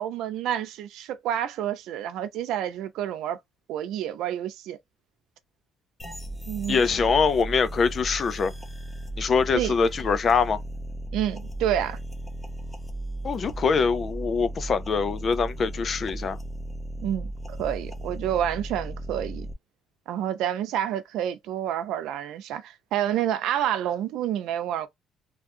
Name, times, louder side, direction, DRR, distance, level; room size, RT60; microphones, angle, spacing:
voice 1, 0.0-3.4 3.7-4.8 6.5-6.8 9.5-9.7 11.1-12.0 17.0-19.5 20.1-24.9, right 10 dB, 85° right, 0.6 m, -29 dB
sound 1, 6.0-19.5, right 1 dB, 10° left, 0.7 m, -36 dB
voice 2, 6.7-8.5 9.2-10.6 13.2-16.4, left 5 dB, 35° left, 0.4 m, -23 dB
3.4 x 2.4 x 2.6 m
cardioid pair, 140°, 0 cm